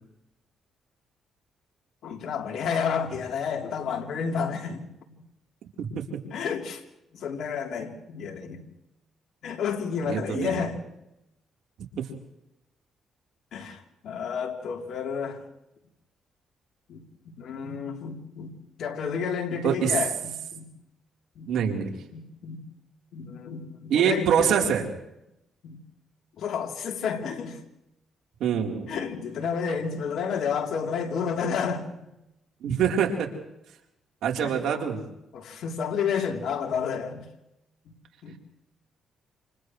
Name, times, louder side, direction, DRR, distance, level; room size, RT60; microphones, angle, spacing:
voice 1, 2.0-5.2 6.3-6.8 7.1-8.6 9.4-10.8 13.5-15.4 16.9-20.7 21.3-21.5 22.1-22.7 23.1-24.5 25.6-25.8 26.4-27.6 28.9-31.9 34.4-34.8 35.3-37.3 37.8-37.9 38.2-38.4, left 6 dB, 70° left, 3.4 m, -31 dB
voice 2, 10.0-10.7 12.0-12.1 19.6-19.9 21.5-21.9 23.9-24.9 28.4-28.9 32.6-33.3 34.2-35.0, right 8 dB, 80° right, 3.8 m, -25 dB
29.0 x 28.0 x 3.2 m
cardioid pair, 90°, 0 cm